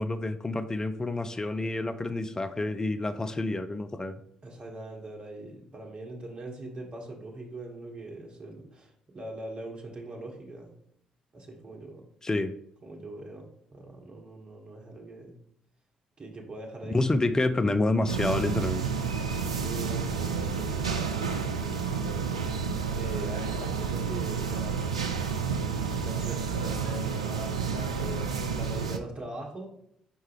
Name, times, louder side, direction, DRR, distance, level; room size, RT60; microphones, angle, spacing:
voice 1, 0.0-4.2 12.2-12.5 16.8-18.8, left 2 dB, 20° left, 9 dB, 0.5 m, -28 dB
voice 2, 4.4-10.7 11.3-12.0 12.8-15.3 16.2-16.9 17.3-17.4 19.6-22.3 22.9-24.9 25.6-29.7, right 2 dB, 35° right, 0 dB, 1.6 m, -42 dB
sound 1, 18.1-29.0, right 6 dB, 85° right, 0.4 m, -30 dB
4.6 x 4.4 x 4.9 m, 0.68 s
figure-of-eight pair, 45°, 3 cm